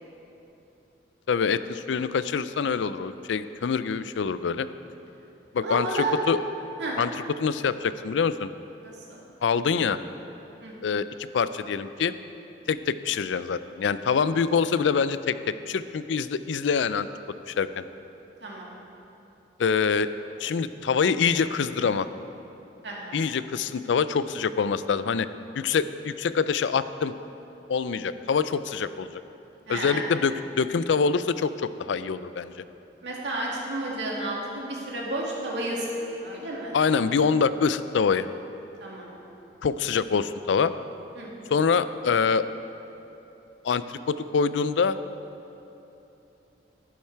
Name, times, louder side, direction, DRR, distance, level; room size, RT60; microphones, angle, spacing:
voice 1, 1.3-4.7 5.5-6.4 7.0-7.1 7.4-8.5 9.4-10.0 10.8-12.1 12.7-17.1 17.5-17.8 19.6-20.1 20.4-22.1 23.1-25.3 25.6-27.1 27.7-29.1 29.7-32.5 36.7-38.3 39.6-40.7 41.5-42.4 43.6-45.0, left 5 dB, 90° left, 14 dB, 0.4 m, -25 dB
voice 2, 5.6-6.1 6.8-7.0 8.8-9.2 10.6-11.0 18.4-18.7 22.8-23.3 29.7-30.1 33.0-36.8 38.8-39.1 41.2-41.5, right 1 dB, 75° right, -3 dB, 2.3 m, -32 dB
11.0 x 10.5 x 4.6 m, 3.0 s
head